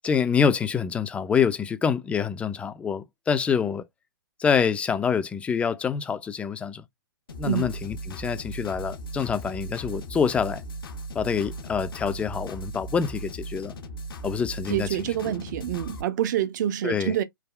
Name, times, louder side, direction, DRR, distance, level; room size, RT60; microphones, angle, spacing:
voice 1, 0.0-3.8 4.4-6.8 7.4-10.6 11.2-13.7 14.2-15.1 16.8-17.1, left 6 dB, 10° left, 0.3 m, -26 dB
sound 1, 7.3-16.0, right 1 dB, 85° left, 0.8 m, -37 dB
voice 2, 14.7-17.2, right 11 dB, 55° right, 0.6 m, -27 dB
3.4 x 2.3 x 2.2 m
hypercardioid pair, 130°, 12 cm